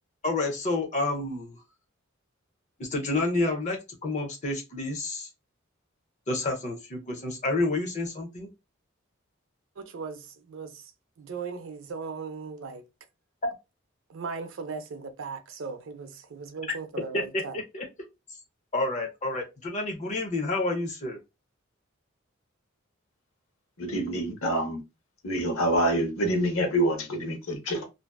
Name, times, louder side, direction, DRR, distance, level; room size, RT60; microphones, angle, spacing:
voice 1, 0.2-1.6 2.8-5.3 6.3-8.5 13.4-13.5 17.1-17.9 18.7-21.2, left 2 dB, 35° left, 0.5 m, -29 dB
voice 2, 9.8-10.9 11.2-12.8 14.1-17.6, right 5 dB, 70° right, 0.5 m, -38 dB
voice 3, 23.8-24.8 25.2-27.8, right 1 dB, 75° left, 0.8 m, -26 dB
2.6 x 2.2 x 2.2 m
head